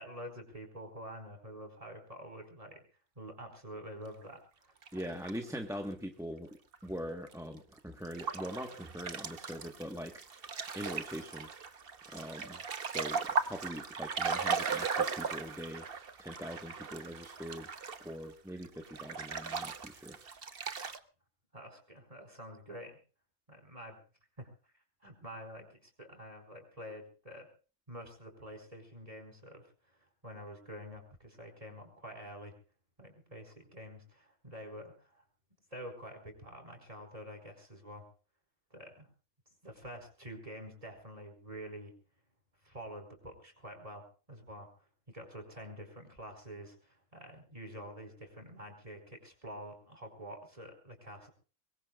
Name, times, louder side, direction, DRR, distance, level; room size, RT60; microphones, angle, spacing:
voice 1, 0.0-2.8 3.2-4.4 4.7-4.8 5.1-5.2 21.5-23.0 23.5-24.0 24.4-24.5 25.0-27.5 27.9-30.0 30.2-32.5 33.0-35.2 35.7-38.0 38.7-39.1 39.6-41.9 42.6-44.7 45.1-51.3, equal, 25° right, 4 dB, 4.9 m, -47 dB
sound 1, 4.8-5.6 6.7-6.8 7.3-7.4 8.0-18.2 18.6-21.0, right 5 dB, 45° right, 1.2 m, -37 dB
voice 2, 4.9-6.5 6.8-10.1 10.7-11.5 12.1-13.2 13.5-15.8 16.2-17.7 18.0-20.2, equal, ahead, 3 dB, 1.2 m, -42 dB
23.0 x 22.5 x 2.4 m, 0.37 s
omnidirectional pair, 1.5 m